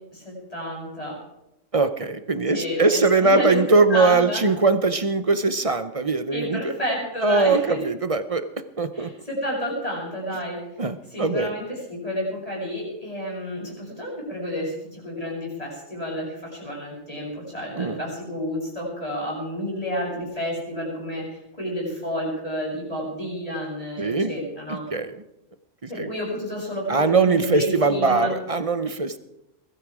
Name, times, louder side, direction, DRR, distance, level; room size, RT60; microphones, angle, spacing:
voice 1, 0.1-1.2 2.5-4.4 6.3-7.8 8.9-10.6 11.1-21.3 21.6-24.9 25.9-28.3, equal, 30° left, -3 dB, 8.0 m, -30 dB
voice 2, 1.7-6.7 7.2-8.5 8.8-9.1 10.8-11.5 17.8-18.0 24.0-24.3 24.9-25.1 26.0-26.1 26.9-29.2, right 3 dB, 35° right, 11 dB, 0.7 m, -21 dB
22.0 x 13.5 x 4.9 m, 0.88 s
omnidirectional pair, 1.3 m